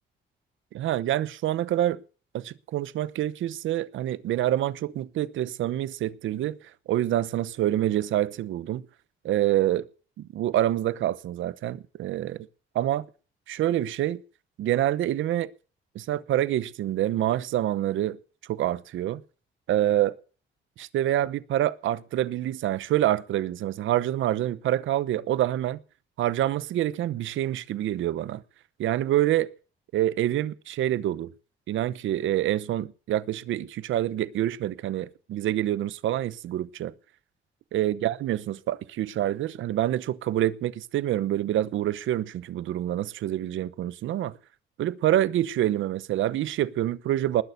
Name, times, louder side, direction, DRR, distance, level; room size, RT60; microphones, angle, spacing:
voice 1, 0.7-2.0 2.3-6.6 6.9-8.8 9.2-9.9 10.2-12.5 12.7-13.0 13.5-14.2 14.6-15.5 15.9-18.2 18.5-19.2 19.7-20.2 20.8-25.8 26.2-28.4 28.8-29.5 29.9-31.3 31.7-36.9 37.7-44.4 44.8-47.4, right 13 dB, 75° right, 0.9 m, -26 dB
20.0 x 6.8 x 8.2 m
cardioid pair, 90°, 20 cm